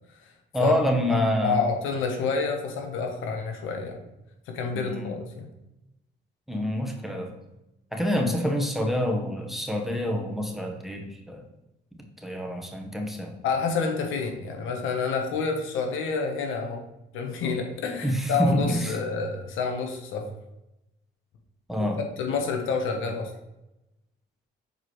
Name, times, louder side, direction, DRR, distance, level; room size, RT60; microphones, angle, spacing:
voice 1, 0.5-1.6 4.7-5.1 6.5-7.3 7.9-11.4 11.9-13.4 18.0-19.0 21.7-22.0, equal, ahead, 1 dB, 1.1 m, -27 dB
voice 2, 1.4-4.0 4.5-5.5 13.4-16.9 17.1-20.3 21.8-23.3, left 4 dB, 85° left, 3 dB, 1.1 m, -28 dB
6.6 x 4.7 x 3.1 m, 0.93 s
cardioid pair, 90°, 20 cm